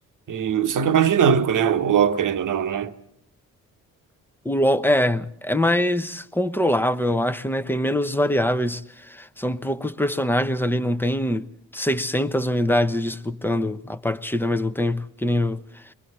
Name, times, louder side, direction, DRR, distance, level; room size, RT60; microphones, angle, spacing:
voice 1, 0.3-2.9, right 8 dB, 50° right, 1.2 m, -20 dB
voice 2, 4.4-11.5 11.7-15.9, left 1 dB, 5° left, 0.9 m, -23 dB
29.0 x 23.0 x 4.1 m
hypercardioid pair, 40°, 41 cm